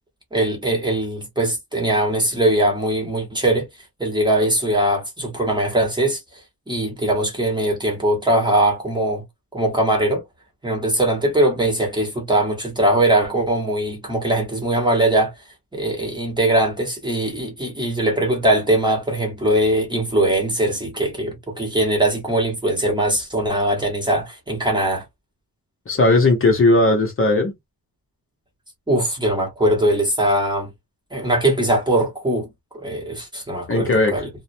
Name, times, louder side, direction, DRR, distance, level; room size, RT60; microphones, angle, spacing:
voice 1, 0.3-3.7 4.0-6.2 6.7-9.2 9.5-10.2 10.6-15.3 15.7-25.0 28.9-30.7 31.1-32.5 32.7-34.3, right 1 dB, 10° right, 1.0 m, -21 dB
voice 2, 25.9-27.5 33.7-34.1, left 2 dB, 35° left, 0.8 m, -17 dB
2.4 x 2.1 x 2.6 m
wide cardioid pair, 145°, 36 cm